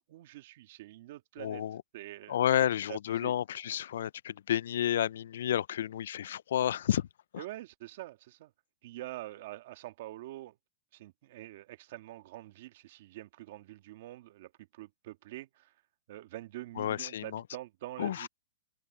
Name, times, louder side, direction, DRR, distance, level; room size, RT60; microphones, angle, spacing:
voice 1, 0.0-1.6 1.9-3.4 7.4-8.5 8.8-10.6 10.9-15.7 16.1-18.3, right 16 dB, 55° right, 1.8 m, -45 dB
voice 2, 1.4-1.8 2.3-7.1 16.8-17.4 18.0-18.3, left 11 dB, 70° left, 0.4 m, -31 dB
hypercardioid pair, 150°, 0 cm